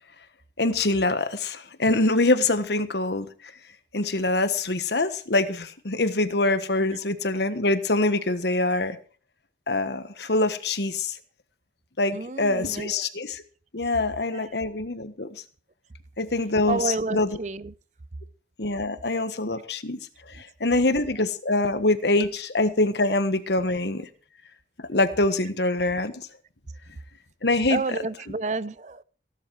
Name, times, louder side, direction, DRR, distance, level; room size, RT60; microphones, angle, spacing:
voice 1, 0.6-3.3 3.9-9.0 9.7-11.2 12.0-13.4 13.7-15.4 16.2-17.4 18.6-20.0 20.3-24.0 24.9-26.3 27.4-27.8, left 2 dB, 70° left, 1.4 m, -24 dB
voice 2, 12.1-13.0 14.3-14.5 16.7-17.7 27.7-29.0, right 3 dB, 40° right, 0.6 m, -30 dB
16.5 x 11.5 x 4.8 m
head